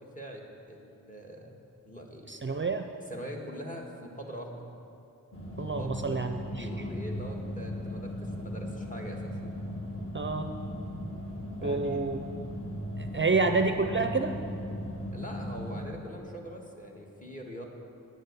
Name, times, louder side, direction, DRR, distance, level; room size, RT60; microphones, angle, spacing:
voice 1, 0.7-1.6 1.8-2.3 3.1-4.7 5.6-9.4 11.6-12.0 13.1-13.3 15.1-17.6, equal, 25° left, 1 dB, 1.6 m, -43 dB
voice 2, 2.3-2.9 5.6-6.7 10.1-10.6 11.6-12.2 13.0-14.4, right 4 dB, 35° right, 7 dB, 0.5 m, -28 dB
sound 1, 5.3-15.9, left 1 dB, 40° left, 2.0 m, -37 dB
9.3 x 8.0 x 8.1 m, 2.7 s
wide cardioid pair, 75°, 34 cm